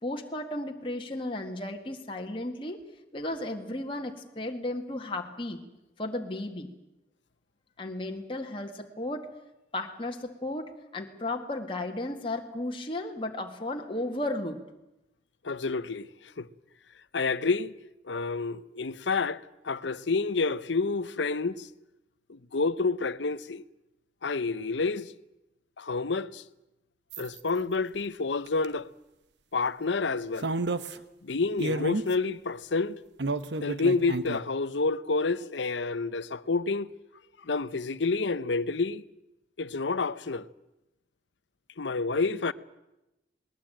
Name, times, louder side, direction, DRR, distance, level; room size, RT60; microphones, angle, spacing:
voice 1, 0.0-2.8 3.1-5.6 6.0-6.7 7.8-9.3 9.7-14.6, left 1 dB, 30° left, 1.8 m, -34 dB
voice 2, 15.4-16.5 17.1-17.7 18.0-21.7 22.3-23.6 24.2-25.1 25.8-26.4 27.2-28.9 29.5-30.5 31.2-33.0 33.6-36.9 37.4-39.0 39.6-40.5 41.8-42.5, left 4 dB, 85° left, 0.8 m, -29 dB
sound 1, 27.1-27.4 28.5-28.7 30.4-31.0 31.6-32.1 33.2-34.4, right 2 dB, 75° right, 1.0 m, -31 dB
20.0 x 19.5 x 9.0 m
head